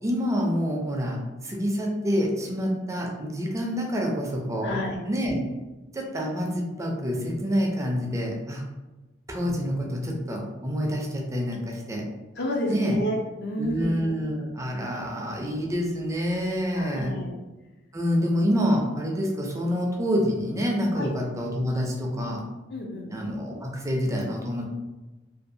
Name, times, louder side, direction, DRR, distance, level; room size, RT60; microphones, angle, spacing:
voice 1, 0.0-5.4 5.9-8.6 9.3-12.0 12.7-13.0 13.6-17.1 17.9-22.4 23.1-24.6, equal, 15° right, 0 dB, 0.4 m, -27 dB
voice 2, 4.6-5.0 12.4-13.9 16.8-17.3 21.0-21.1 22.7-23.1, left 1 dB, 60° left, 0 dB, 0.5 m, -30 dB
2.6 x 2.3 x 2.6 m, 1.1 s
head